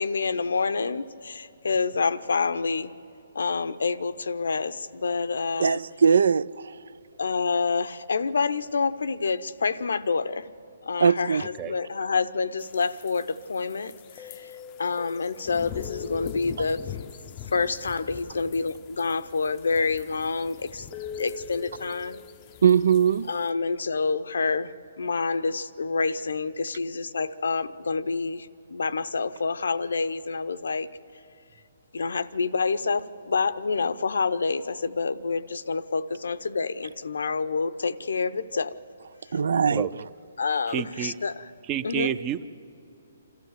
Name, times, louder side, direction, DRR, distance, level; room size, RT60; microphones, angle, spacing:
voice 1, 0.0-2.9 3.3-5.8 7.2-10.5 10.8-14.5 14.8-16.8 17.5-20.9 21.2-22.2 23.3-30.9 31.9-38.8 40.4-41.4 41.8-42.1, left 4 dB, 85° left, 0.8 m, -28 dB
voice 2, 5.6-6.9 11.0-11.5 22.6-23.3 39.3-39.9, right 7 dB, 75° right, 0.4 m, -21 dB
sound 1, 12.6-23.5, left 8 dB, 25° left, 0.5 m, -42 dB
voice 3, 40.7-41.2 41.7-42.4, right 10 dB, 20° right, 0.6 m, -29 dB
27.5 x 13.5 x 8.0 m
hypercardioid pair, 160°, 0 cm